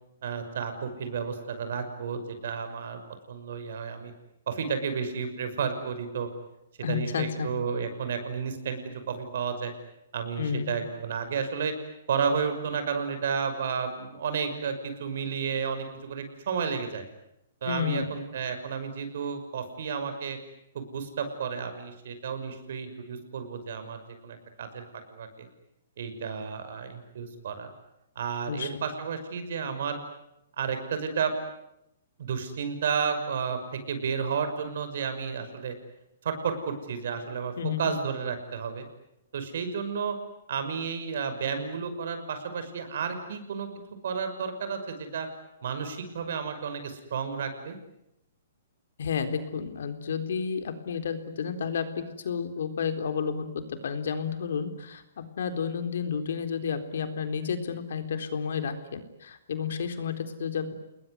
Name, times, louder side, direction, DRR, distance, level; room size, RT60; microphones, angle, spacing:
voice 1, 0.2-3.0 3.3-4.1 4.5-6.3 6.9-8.8 9.1-9.7 10.1-11.7 12.1-17.0 17.6-20.4 20.7-24.8 25.1-25.5 26.0-27.7 28.2-30.0 30.6-31.3 32.2-35.7 36.2-38.8 39.3-40.2 40.5-43.7 44.0-45.3 45.6-47.8, right 6 dB, 60° right, 8 dB, 6.0 m, -32 dB
voice 2, 6.8-7.5 10.4-10.8 17.6-18.1 28.5-28.8 37.6-37.9 49.0-60.7, left 6 dB, 70° left, 8 dB, 4.0 m, -31 dB
30.0 x 21.0 x 9.7 m, 0.85 s
hypercardioid pair, 165°, 0 cm